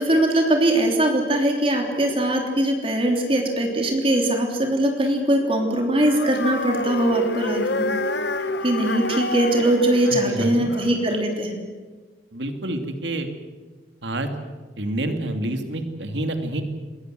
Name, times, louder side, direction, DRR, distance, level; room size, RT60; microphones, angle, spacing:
voice 1, 0.0-7.9 8.6-11.6, right 1 dB, 30° right, 2 dB, 3.3 m, -21 dB
sound 1, 6.0-11.2, left 2 dB, 75° left, 1.3 m, -28 dB
voice 2, 10.1-10.7 12.3-13.3 14.0-14.3 14.8-16.6, right 1 dB, 90° right, 6 dB, 2.8 m, -28 dB
28.0 x 22.0 x 7.8 m, 1.4 s
head